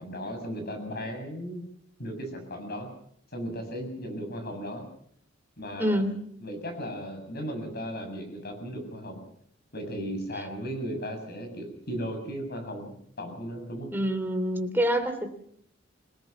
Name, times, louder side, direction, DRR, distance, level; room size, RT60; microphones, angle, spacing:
voice 1, 0.0-1.6 2.0-2.9 3.3-4.9 5.6-6.0 6.4-9.2 9.7-13.9, equal, 55° left, 5 dB, 7.4 m, -36 dB
voice 2, 5.8-6.1 13.9-15.4, equal, 10° right, 5 dB, 2.9 m, -26 dB
26.5 x 19.0 x 6.0 m, 0.65 s
head